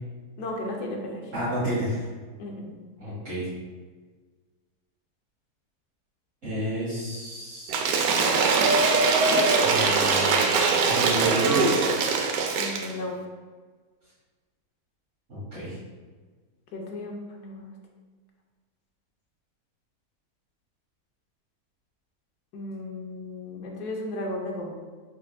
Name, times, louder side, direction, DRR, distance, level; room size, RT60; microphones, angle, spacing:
voice 1, 0.4-1.3 2.4-2.7 12.6-13.2 16.7-17.7 22.5-24.7, left 1 dB, 75° left, 0 dB, 1.3 m, -35 dB
voice 2, 1.3-2.1 3.0-3.5 6.4-7.7 9.6-10.5 10.8-11.7 15.3-15.8, equal, 50° right, -12 dB, 1.8 m, -30 dB
Cheering / Applause / Crowd, 7.7-12.9, right 4 dB, 75° right, 1.0 m, -22 dB
6.0 x 3.5 x 2.2 m, 1.4 s
omnidirectional pair, 1.7 m